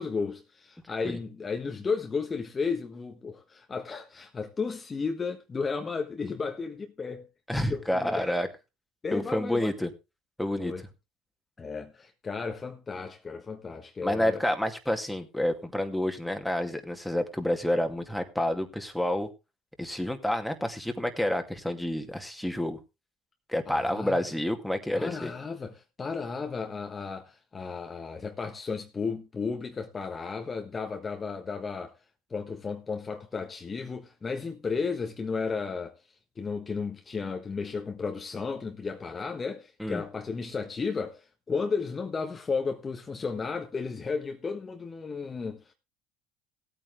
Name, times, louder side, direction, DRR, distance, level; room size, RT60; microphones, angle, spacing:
voice 1, 0.0-7.3 7.6-8.3 9.0-9.7 10.6-10.8 11.6-14.4 23.7-24.2 24.9-31.9 32.3-36.0 36.4-45.7, left 5 dB, 30° left, 1.3 m, -33 dB
voice 2, 7.5-8.5 9.1-9.9 10.4-10.7 14.0-19.3 19.8-22.8 23.5-25.3 39.8-40.0, left 1 dB, ahead, 2.3 m, -29 dB
16.5 x 8.8 x 3.5 m
hypercardioid pair, 75°, 0 cm